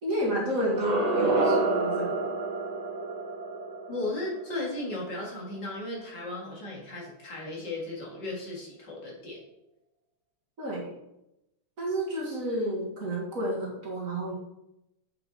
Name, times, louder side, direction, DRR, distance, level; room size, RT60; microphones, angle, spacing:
voice 1, 0.0-2.3 10.6-11.0 11.8-14.3, equal, 40° right, -3 dB, 1.9 m, -30 dB
sound 1, 0.7-5.6, right 3 dB, 70° right, 2.1 m, -29 dB
voice 2, 3.9-9.4, left 2 dB, 55° left, -3 dB, 2.6 m, -35 dB
7.9 x 5.6 x 4.1 m, 0.88 s
omnidirectional pair, 2.3 m